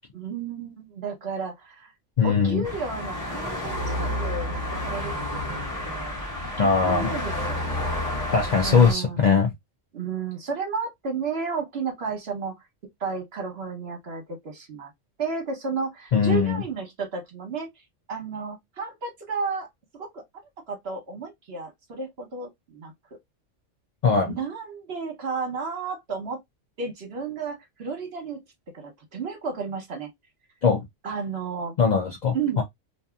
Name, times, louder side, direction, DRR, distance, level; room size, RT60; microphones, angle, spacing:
voice 1, 0.1-1.9 2.2-6.1 6.5-7.9 8.6-9.2 9.9-12.5 13.0-14.9 15.2-17.7 18.1-19.7 19.9-20.2 20.7-22.9 24.3-26.4 26.8-28.4 28.7-30.1 31.0-31.7 32.3-32.6, right 5 dB, 55° right, 1.2 m, -32 dB
voice 2, 2.2-2.6 6.6-7.1 8.3-9.5 16.1-16.6 24.0-24.4 30.6-30.9 31.8-32.6, left 5 dB, 60° left, 0.5 m, -21 dB
sound 1, 2.6-8.9, left 1 dB, 15° left, 1.0 m, -30 dB
2.7 x 2.5 x 2.2 m
omnidirectional pair, 1.3 m